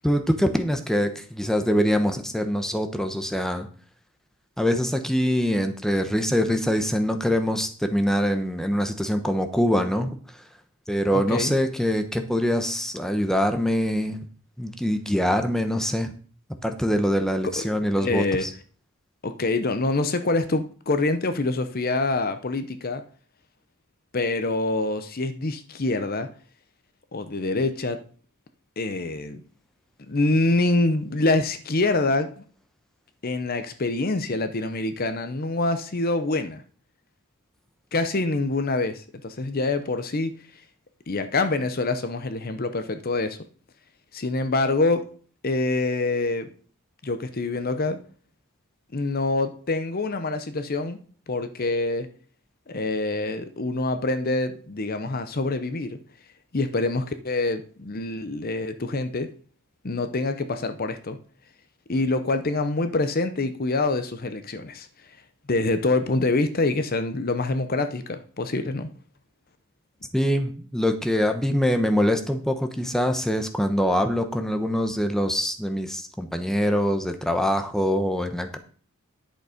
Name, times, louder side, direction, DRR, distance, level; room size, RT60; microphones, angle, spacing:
voice 1, 0.0-3.7 4.6-10.4 10.9-14.2 14.6-16.1 16.6-18.5 70.1-78.6, equal, ahead, 6 dB, 0.9 m, -24 dB
voice 2, 11.1-11.5 17.4-18.5 19.2-23.0 24.1-26.3 27.1-28.0 28.8-29.4 30.1-32.3 33.2-36.6 37.9-40.3 41.1-43.4 44.1-45.0 45.4-46.5 47.0-48.0 48.9-51.0 51.3-52.1 52.7-56.0 56.5-59.3 59.8-61.2 61.9-64.9 65.5-68.9, left 2 dB, 40° left, 10 dB, 0.7 m, -25 dB
11.0 x 6.7 x 5.1 m, 0.44 s
head